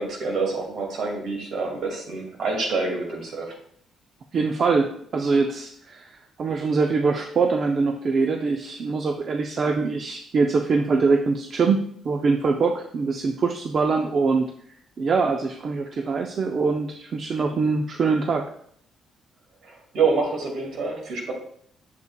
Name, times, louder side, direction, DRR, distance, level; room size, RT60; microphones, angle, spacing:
voice 1, 0.0-3.5 19.6-21.3, right 4 dB, 75° right, 1 dB, 2.1 m, -27 dB
voice 2, 4.3-14.5 15.0-18.5, right 4 dB, 50° right, 4 dB, 0.5 m, -23 dB
8.1 x 6.7 x 2.3 m, 0.64 s
cardioid pair, 90°, 0 cm